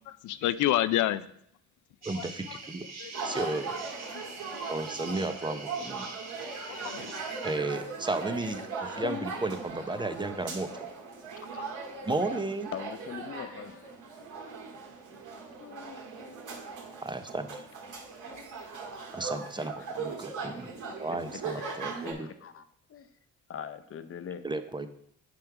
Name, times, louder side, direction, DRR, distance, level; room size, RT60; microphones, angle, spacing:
voice 1, 0.1-1.3 2.2-2.3 3.0-3.4 4.1-4.5 6.7-7.2, left 13 dB, 75° left, 14 dB, 0.5 m, -29 dB
voice 2, 2.0-2.9 3.2-3.7 4.7-6.1 7.4-10.9 12.0-12.7 17.0-17.7 19.1-20.7 21.0-22.3 24.4-24.9, right 2 dB, 15° right, 9 dB, 0.6 m, -34 dB
sound 1, 2.0-7.6, right 4 dB, 60° right, 1.5 m, -44 dB
sound 2, 3.1-22.1, right 4 dB, 80° right, 2.6 m, -39 dB
voice 3, 12.7-13.8 15.6-16.4 21.8-21.9 22.4-22.6 22.9-23.1 23.5-24.4, left 8 dB, 45° left, 11 dB, 0.7 m, -40 dB
9.1 x 3.4 x 5.9 m, 0.72 s
cardioid pair, 90°, 30 cm